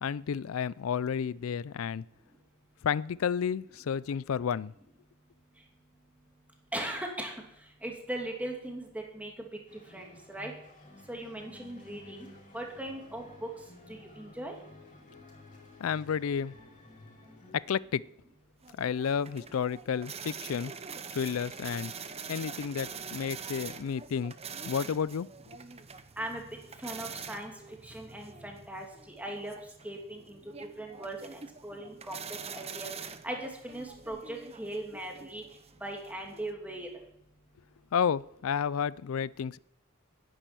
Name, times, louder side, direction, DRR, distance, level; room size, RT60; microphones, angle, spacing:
voice 1, 0.0-2.0 2.8-4.7 15.8-16.5 17.5-18.0 18.8-20.7 21.1-21.9 22.3-24.3 24.6-25.3 37.9-39.6, left 7 dB, 75° left, 21 dB, 0.4 m, -31 dB
voice 2, 6.7-7.3 7.8-9.3 9.9-10.5 11.1-12.3 12.5-13.5 13.9-14.5 26.2-26.4 26.8-27.5 27.8-28.8 29.2-29.5 29.8-30.4 30.8-32.9 33.2-35.4 35.8-36.9, right 1 dB, 5° right, 1 dB, 2.7 m, -39 dB
sound 1, 9.7-17.5, left 2 dB, 35° left, 5.1 m, -53 dB
sound 2, 18.6-36.5, right 6 dB, 30° right, 0.8 m, -45 dB
10.5 x 10.0 x 9.0 m, 0.82 s
head